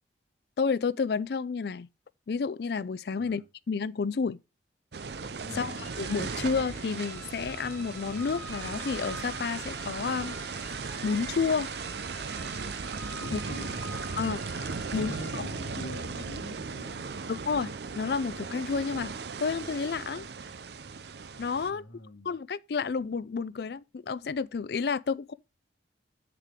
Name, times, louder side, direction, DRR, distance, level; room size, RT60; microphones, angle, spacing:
voice 1, 0.6-1.9 2.3-4.4 5.5-10.4 11.0-11.7 13.3-13.4 14.2-14.4 14.9-15.4 17.3-19.1 19.4-20.3 21.4-21.8 22.2-25.3, left 5 dB, 60° left, 0.4 m, -30 dB
sound 1, 4.9-21.7, right 5 dB, 60° right, 0.6 m, -37 dB
voice 2, 5.4-5.8 13.2-13.8 14.9-17.2 21.7-22.3, left 1 dB, 85° left, 1.2 m, -44 dB
sound 2, 5.8-15.4, left 3 dB, 10° left, 2.8 m, -47 dB
8.2 x 6.7 x 3.6 m
head